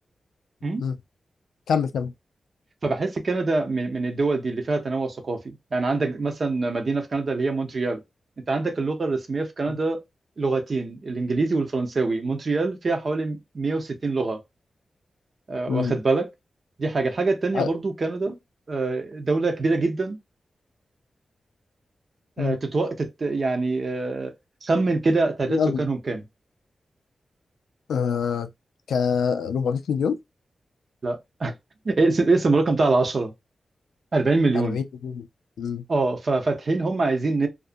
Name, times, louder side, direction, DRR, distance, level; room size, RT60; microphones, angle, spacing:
voice 1, 1.7-2.1 15.7-16.0 17.5-17.7 22.4-22.6 25.5-25.8 27.9-28.5 28.9-30.2 34.5-35.3 35.6-35.8, left 6 dB, 90° left, 0.3 m, -25 dB
voice 2, 2.8-8.0 8.5-10.0 10.4-14.4 15.5-16.3 16.8-18.3 18.7-20.2 22.4-24.3 24.6-26.2 31.0-31.5 31.8-33.3 34.1-34.8 35.9-37.5, right 3 dB, 60° right, 0.7 m, -24 dB
2.5 x 2.4 x 2.5 m
supercardioid pair, 40°, 0 cm